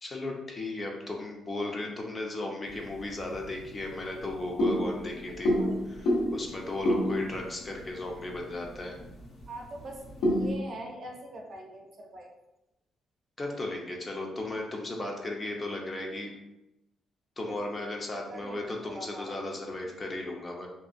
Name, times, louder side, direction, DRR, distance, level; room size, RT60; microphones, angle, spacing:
voice 1, 0.0-5.5 5.9-9.0 13.4-16.3 17.4-20.7, left 2 dB, 30° left, 0 dB, 0.6 m, -36 dB
sound 1, 2.7-10.6, equal, 80° left, 0.8 m, -31 dB
voice 2, 5.3-5.8 9.5-12.3 17.7-17.9 18.3-19.3, right 1 dB, 55° right, 1 dB, 0.5 m, -43 dB
2.7 x 2.3 x 2.5 m, 0.91 s
cardioid pair, 90°, 0 cm